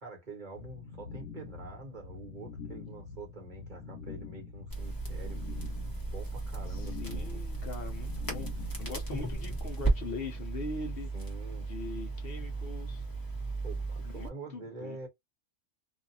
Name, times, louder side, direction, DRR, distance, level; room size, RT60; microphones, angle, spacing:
voice 1, 0.0-5.4 6.1-7.4 11.1-11.7 13.6-15.1, right 2 dB, 40° right, 1.1 m, -46 dB
sound 1, 0.5-9.1, left 4 dB, 90° left, 1.1 m, -45 dB
Crackle, 4.7-14.3, right 2 dB, 20° left, 1.0 m, -35 dB
voice 2, 6.7-11.1 11.7-13.0 14.0-15.0, left 3 dB, 55° left, 0.9 m, -42 dB
2.7 x 2.4 x 2.6 m
omnidirectional pair, 1.2 m